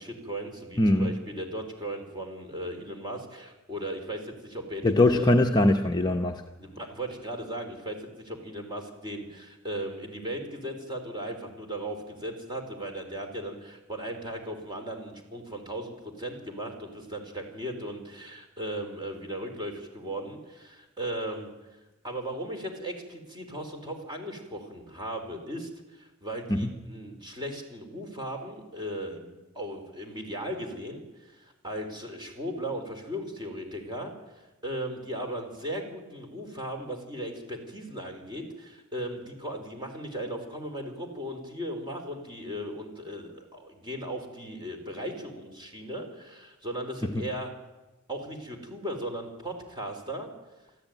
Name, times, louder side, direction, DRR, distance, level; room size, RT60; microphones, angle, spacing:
voice 1, 0.0-5.3 6.6-21.5 22.0-34.1 34.6-47.5 48.1-50.3, right 1 dB, 20° right, 4 dB, 3.8 m, -37 dB
voice 2, 0.8-1.1 4.8-6.4 26.5-26.7 47.0-47.2, left 1 dB, 20° left, 2 dB, 0.8 m, -22 dB
23.5 x 14.0 x 9.2 m, 1.1 s
head